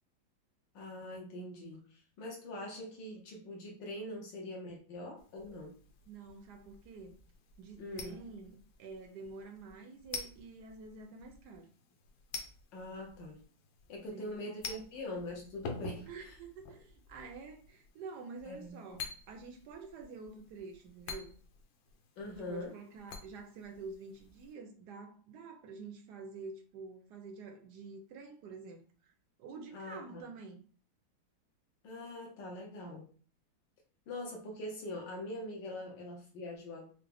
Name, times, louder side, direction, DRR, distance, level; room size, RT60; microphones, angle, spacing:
voice 1, 0.7-5.8 7.8-8.2 12.7-13.4 13.9-16.4 18.4-19.0 22.2-22.7 29.7-30.3 31.8-33.1 34.1-36.9, left 1 dB, 70° left, 1.4 m, -43 dB
sound 1, 5.2-24.5, left 4 dB, 90° left, 1.5 m, -49 dB
voice 2, 6.1-7.2 7.6-11.7 14.1-14.8 16.1-21.4 22.2-29.1 29.4-30.6, right 4 dB, 75° right, 1.0 m, -48 dB
4.6 x 2.1 x 3.3 m
omnidirectional pair, 2.1 m